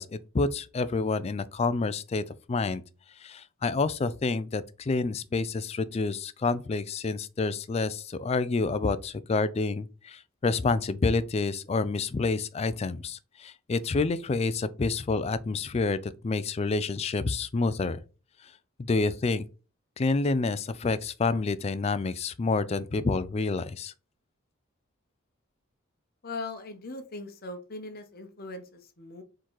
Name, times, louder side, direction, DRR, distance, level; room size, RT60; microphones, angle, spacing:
voice 1, 0.0-2.2 2.5-2.8 3.2-18.0 18.8-19.4 20.0-23.9, left 3 dB, 30° left, 0.3 m, -28 dB
voice 2, 26.2-29.2, left 3 dB, 45° left, 0.8 m, -40 dB
4.4 x 3.8 x 3.1 m
head